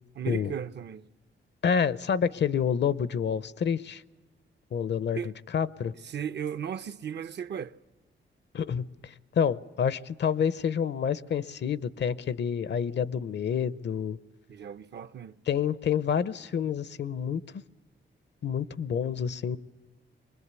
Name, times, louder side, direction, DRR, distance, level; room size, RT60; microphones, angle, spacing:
voice 1, 0.1-1.1 5.1-5.3 6.0-7.8 14.5-15.4, right 8 dB, 60° right, 0.7 m, -36 dB
voice 2, 1.6-4.0 4.7-5.9 8.5-14.2 15.5-17.4 18.4-19.6, left 7 dB, 65° left, 0.7 m, -28 dB
24.5 x 20.5 x 8.2 m
wide cardioid pair, 110°, 20 cm